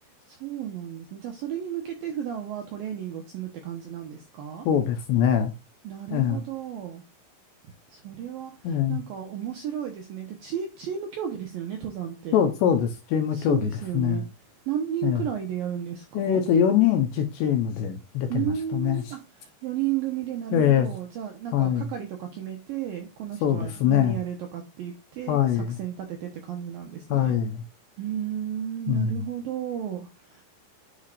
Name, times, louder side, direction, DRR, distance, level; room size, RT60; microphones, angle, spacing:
voice 1, 0.3-4.7 5.8-7.0 7.9-12.4 13.3-14.2 14.7-16.4 18.3-27.4 28.0-30.4, right 10 dB, 75° right, 2.2 m, -33 dB
voice 2, 4.7-5.5 6.1-6.4 8.6-9.0 12.3-14.3 15.0-15.2 16.1-19.1 20.5-20.9 21.5-21.9 23.4-24.2 25.3-25.8 27.1-27.6 28.9-29.2, left 9 dB, 75° left, 2.8 m, -23 dB
10.0 x 4.7 x 2.5 m
omnidirectional pair, 5.5 m